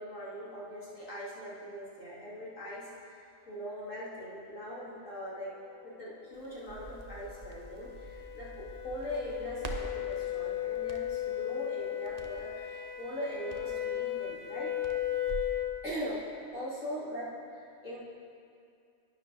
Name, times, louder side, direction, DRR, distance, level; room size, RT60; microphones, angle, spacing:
voice 1, 0.0-5.5 5.8-14.7 15.8-16.2 16.5-18.0, equal, 75° left, -8 dB, 2.5 m, -41 dB
sound 1, 5.9-15.8, left 12 dB, 50° left, 0.8 m, -36 dB
Crackle, 6.3-15.6, right 3 dB, 45° right, 0.5 m, -47 dB
11.5 x 9.6 x 2.6 m, 2.4 s
omnidirectional pair, 1.3 m